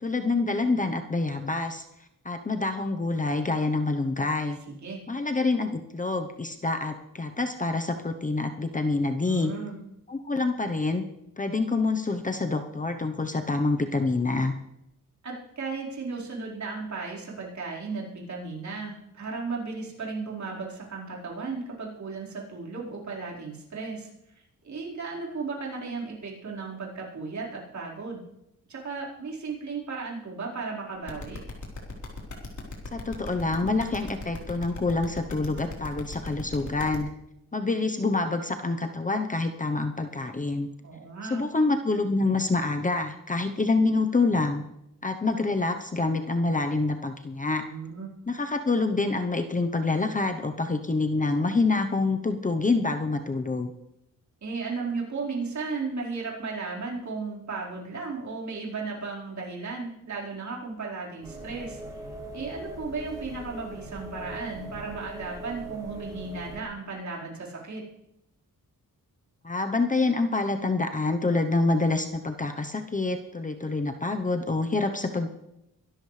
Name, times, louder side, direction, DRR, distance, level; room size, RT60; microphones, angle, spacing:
voice 1, 0.0-1.8 2.2-4.6 5.1-9.5 10.1-11.0 11.4-14.5 32.9-37.1 37.5-40.7 41.3-44.6 45.0-47.6 48.3-53.7 69.4-75.3, left 3 dB, 25° left, 6 dB, 0.9 m, -26 dB
voice 2, 4.7-5.0 9.2-9.8 15.2-24.1 24.6-28.2 28.7-31.4 40.8-41.4 47.6-48.1 54.4-62.0 62.3-67.8, right 4 dB, 55° right, -4 dB, 4.7 m, -35 dB
sound 1, 31.1-36.9, left 3 dB, 55° left, 4.1 m, -37 dB
sound 2, 61.2-66.6, right 1 dB, 10° right, 3.8 m, -41 dB
24.0 x 12.5 x 3.3 m, 0.86 s
wide cardioid pair, 120°, 34 cm